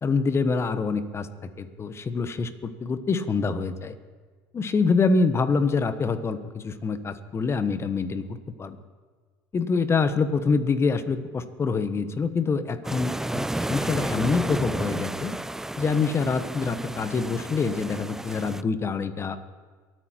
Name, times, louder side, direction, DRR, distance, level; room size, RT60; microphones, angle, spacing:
voice 1, 0.0-3.9 4.5-8.3 8.6-8.8 9.5-15.3 15.8-19.4, left 4 dB, 30° left, 11 dB, 1.2 m, -26 dB
sound 1, 12.8-18.6, right 1 dB, 5° right, 0.3 m, -31 dB
23.5 x 9.2 x 4.5 m, 1.5 s
supercardioid pair, 90°, 9 cm